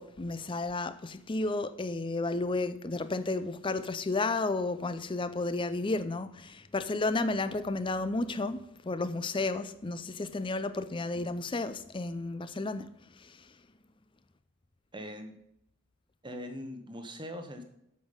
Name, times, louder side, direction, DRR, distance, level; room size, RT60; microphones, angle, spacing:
voice 1, 0.0-13.5, left 2 dB, 20° left, 0.5 m, -32 dB
voice 2, 14.9-15.3 16.2-17.6, equal, 20° right, 1.0 m, -41 dB
8.5 x 7.1 x 5.5 m
head